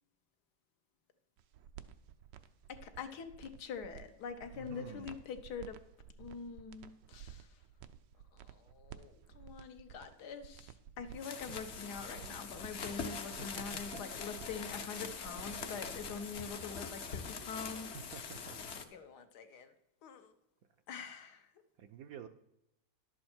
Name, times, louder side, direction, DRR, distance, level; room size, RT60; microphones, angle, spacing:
sound 1, 1.4-16.5, right 9 dB, 85° right, 1.3 m, -54 dB
voice 1, 2.7-5.8 6.2-7.5 8.3-17.9 18.2-18.5 18.9-19.7 20.0-20.3 20.9-21.5, left 6 dB, 70° left, 8 dB, 1.4 m, -45 dB
voice 2, 4.5-5.1 11.5-11.6 13.6-14.0 18.1-18.6 21.8-22.3, right 8 dB, 70° right, 8 dB, 0.9 m, -49 dB
sound 2, 11.1-18.8, left 5 dB, 50° left, 0.9 m, -43 dB
11.0 x 7.6 x 4.4 m, 0.84 s
omnidirectional pair, 1.9 m